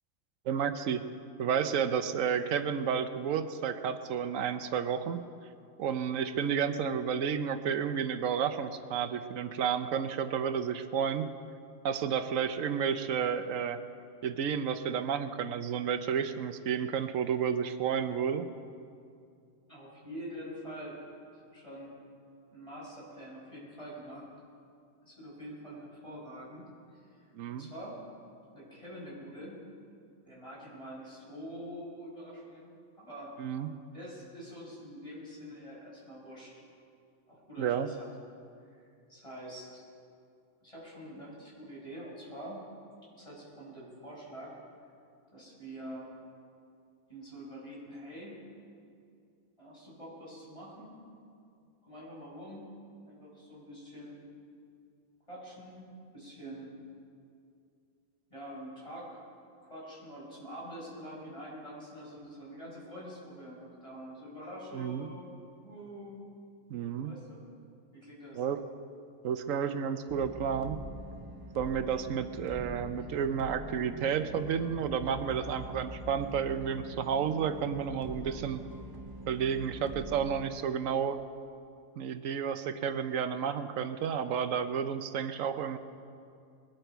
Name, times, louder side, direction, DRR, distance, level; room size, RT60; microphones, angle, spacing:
voice 1, 0.5-1.1 1.4-5.2 5.8-11.3 11.8-13.8 14.2-18.5 27.4-27.7 33.4-33.7 37.6-37.9 64.7-65.1 66.7-67.1 68.4-68.6 69.2-70.8 71.5-78.6 79.3-81.2 82.0-85.8, right 7 dB, 85° right, 10 dB, 1.1 m, -31 dB
voice 2, 19.7-21.0 21.5-21.9 22.5-24.3 25.0-26.6 26.9-28.0 28.5-29.6 30.2-33.3 33.9-36.5 37.3-38.1 38.6-39.8 40.6-42.6 43.2-44.6 45.3-46.1 47.1-48.4 49.6-50.9 51.8-52.7 53.1-54.3 55.3-55.9 56.1-56.8 58.3-59.2 59.7-65.4 65.6-66.2 66.9-67.5 67.9-68.4, equal, 25° left, -5 dB, 5.1 m, -45 dB
sound 1, 70.1-80.4, right 1 dB, 20° right, 0.8 m, -44 dB
21.5 x 12.0 x 4.6 m, 2.4 s
omnidirectional pair, 1.3 m